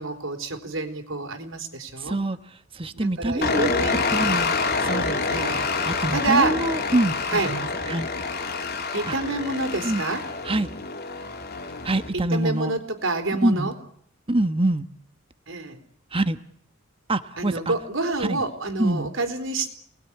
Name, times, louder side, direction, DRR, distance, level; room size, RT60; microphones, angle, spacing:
voice 1, 0.0-2.2 2.9-4.5 5.3-5.6 6.1-6.6 7.3-7.5 8.9-10.2 12.1-13.7 15.5-15.8 17.4-19.7, right 3 dB, 70° right, 7 dB, 4.0 m, -28 dB
voice 2, 2.0-3.7 4.1-5.2 5.8-8.1 9.1-9.2 9.8-10.0 10.4-10.7 11.8-12.7 13.3-13.7 14.3-14.9 16.1-16.4 17.1-17.7 18.2-18.4 18.8-19.1, right 1 dB, 25° right, 10 dB, 1.2 m, -25 dB
sound 1, 3.4-12.1, left 4 dB, 50° left, 3.1 m, -27 dB
29.0 x 20.0 x 10.0 m, 0.72 s
head